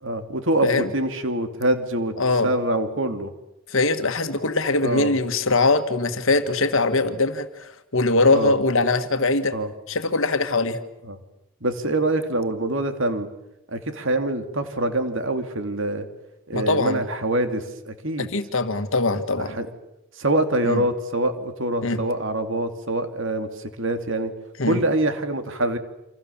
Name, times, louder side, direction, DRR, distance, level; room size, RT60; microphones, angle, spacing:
voice 1, 0.0-2.2 2.4-3.3 4.8-5.2 8.3-8.6 9.5-9.7 11.0-11.2 11.6-13.3 13.7-16.1 16.5-18.3 19.4-19.7 20.2-24.3 24.6-25.8, right 1 dB, 60° right, 8 dB, 2.9 m, -25 dB
voice 2, 2.2-2.5 3.7-9.5 9.9-10.8 16.5-17.0 18.2-19.6 20.6-20.8 21.8-22.0 24.6-24.8, left 3 dB, 60° left, 9 dB, 1.8 m, -22 dB
28.5 x 27.0 x 7.3 m, 0.87 s
head